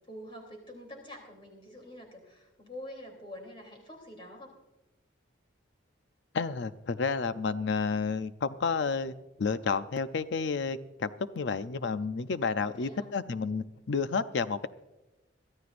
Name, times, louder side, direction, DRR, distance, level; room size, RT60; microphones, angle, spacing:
voice 1, 0.1-4.6 12.6-13.1, left 1 dB, 25° left, 1 dB, 3.2 m, -46 dB
voice 2, 6.3-14.7, left 5 dB, 65° left, 12 dB, 0.5 m, -31 dB
22.5 x 13.0 x 2.5 m, 1.0 s
head